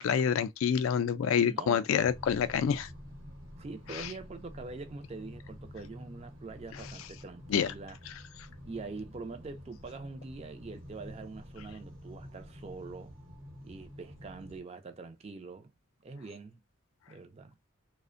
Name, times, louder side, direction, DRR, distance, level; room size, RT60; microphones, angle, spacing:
voice 1, 0.0-2.9 3.9-4.1 7.5-7.7, left 7 dB, 80° left, 0.3 m, -27 dB
voice 2, 1.5-1.8 3.6-8.0 8.7-13.2 13.6-15.7 16.0-16.6 17.1-17.6, right 3 dB, 30° right, 0.3 m, -44 dB
sound 1, 1.9-14.6, left 1 dB, 70° right, 0.9 m, -49 dB
2.4 x 2.1 x 2.4 m
head